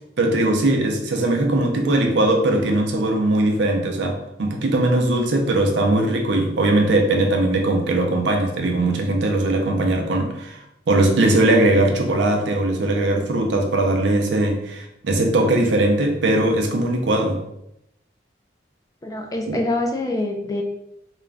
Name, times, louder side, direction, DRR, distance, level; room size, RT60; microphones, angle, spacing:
voice 1, 0.2-17.4 19.5-19.6, right 2 dB, 65° right, 3 dB, 0.5 m, -20 dB
voice 2, 19.0-20.6, left 2 dB, 20° left, 2 dB, 0.3 m, -25 dB
2.4 x 2.1 x 3.3 m, 0.82 s
head